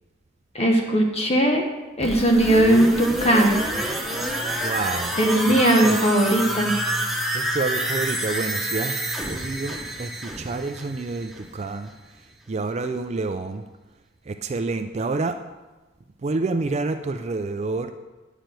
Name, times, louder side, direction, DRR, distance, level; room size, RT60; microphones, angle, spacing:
voice 1, 0.5-1.6 2.0-3.6 5.2-6.7, right 1 dB, 30° left, 2 dB, 1.0 m, -19 dB
sound 1, 2.0-11.7 12.0-12.1, right 1 dB, ahead, 0.9 m, -28 dB
voice 2, 4.6-5.2 5.8-6.0 7.3-9.0 9.3-11.9 12.5-13.6 14.3-15.4 16.2-17.9, right 3 dB, 35° right, 7 dB, 0.4 m, -28 dB
10.0 x 4.9 x 7.6 m, 1.2 s
head